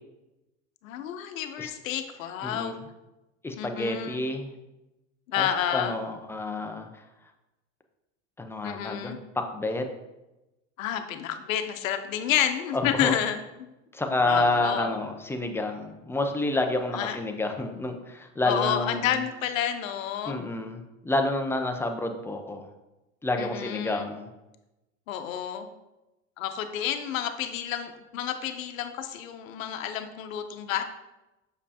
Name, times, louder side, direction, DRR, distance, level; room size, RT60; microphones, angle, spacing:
voice 1, 0.8-2.8 3.6-4.2 5.3-6.0 8.6-9.2 10.8-13.7 14.2-14.9 16.9-17.2 18.4-20.4 23.4-24.1 25.1-25.7 26.4-30.8, left 10 dB, 85° left, 7 dB, 0.8 m, -30 dB
voice 2, 2.4-2.8 3.4-4.6 5.4-7.0 8.4-9.9 12.7-13.1 13.9-19.2 20.3-22.7 23.2-24.3, left 2 dB, 5° left, 5 dB, 0.4 m, -29 dB
6.9 x 5.1 x 2.8 m, 0.99 s
supercardioid pair, 115°, 39 cm